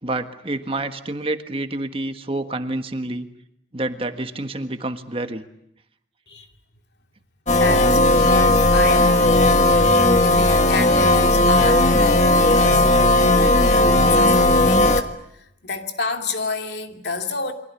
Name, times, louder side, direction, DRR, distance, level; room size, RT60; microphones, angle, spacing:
voice 1, 0.0-3.3 3.7-5.4, right 2 dB, 30° right, 1.5 m, -28 dB
voice 2, 7.5-12.9 13.4-14.4 14.6-17.5, left 4 dB, 70° left, 2.7 m, -29 dB
sound 1, 7.5-15.0, left 2 dB, 40° left, 1.7 m, -16 dB
29.0 x 23.5 x 8.4 m
head